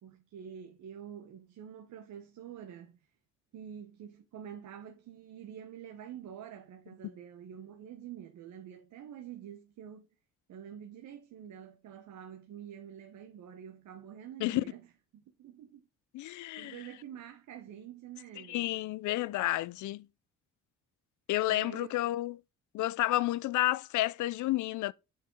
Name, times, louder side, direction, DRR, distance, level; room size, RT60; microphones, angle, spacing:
voice 1, 0.0-3.0 3.5-10.1 10.5-15.9 16.2-18.6 21.5-22.0, right 9 dB, 75° right, 1.1 m, -47 dB
voice 2, 16.1-16.7 18.5-20.1 21.3-22.4 22.7-24.9, left 16 dB, 75° left, 0.5 m, -30 dB
7.1 x 5.6 x 4.6 m
cardioid pair, 90°, 30 cm